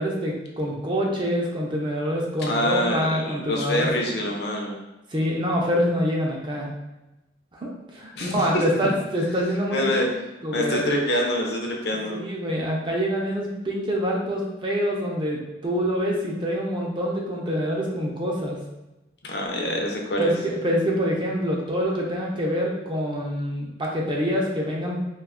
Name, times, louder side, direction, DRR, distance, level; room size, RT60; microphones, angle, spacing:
voice 1, 0.0-4.2 5.1-6.7 7.5-10.1 10.4-10.8 12.1-18.6 20.2-25.0, equal, 25° right, -2 dB, 0.4 m, -26 dB
voice 2, 2.5-4.8 8.2-8.9 9.7-10.0 10.5-12.2 19.2-20.3, left 1 dB, 60° left, 0 dB, 0.5 m, -26 dB
2.7 x 2.3 x 3.5 m, 0.99 s
head